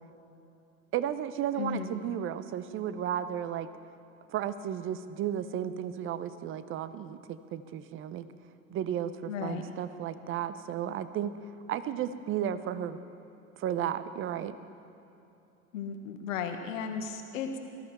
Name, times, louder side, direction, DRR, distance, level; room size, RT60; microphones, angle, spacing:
voice 1, 0.9-3.7 4.3-8.3 8.7-11.3 11.7-13.0 13.6-14.6, right 10 dB, 30° right, 13 dB, 0.7 m, -33 dB
voice 2, 1.6-1.9 9.3-9.6 15.7-17.6, left 6 dB, 65° left, 5 dB, 1.6 m, -35 dB
18.5 x 13.5 x 4.3 m, 2.8 s
figure-of-eight pair, 85°, 43 cm